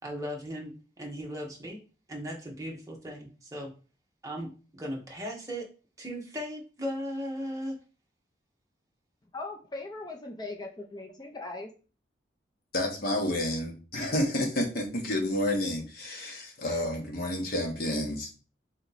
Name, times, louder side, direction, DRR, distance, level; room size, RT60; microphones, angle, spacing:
voice 1, 0.0-0.7 1.0-1.8 2.1-3.7 4.2-5.7 6.0-7.8, equal, 20° right, 0 dB, 1.1 m, -37 dB
voice 2, 9.3-11.7, left 2 dB, 20° left, 2 dB, 0.6 m, -39 dB
voice 3, 12.7-18.3, left 1 dB, 50° left, 1 dB, 1.2 m, -30 dB
4.2 x 3.0 x 4.1 m, 0.36 s
head